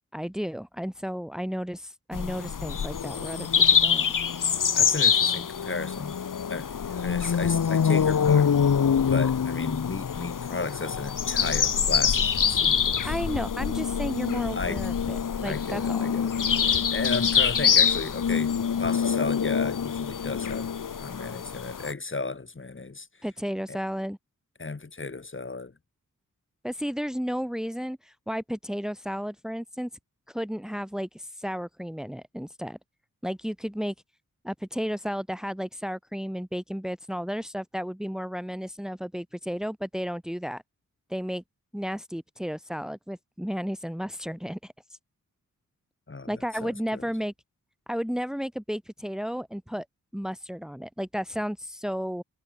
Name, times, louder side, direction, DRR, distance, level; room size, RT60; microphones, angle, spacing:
voice 1, 0.1-4.1 13.0-16.2 23.2-24.2 26.6-29.9 30.3-32.8 33.2-33.9 34.4-40.6 41.1-41.4 41.7-44.7 46.3-47.3 47.9-49.9 50.1-52.2, equal, ahead, 2.8 m, -33 dB
sound 1, 2.1-21.9, left 7 dB, 70° left, 2.1 m, -25 dB
voice 2, 4.7-6.2 6.5-8.5 9.1-13.1 14.5-14.9 15.4-16.3 16.6-18.5 18.8-20.7 21.0-23.1 23.7-23.8 24.6-25.7 46.1-47.1, left 3 dB, 35° left, 6.6 m, -34 dB
wide cardioid pair, 100°, 33 cm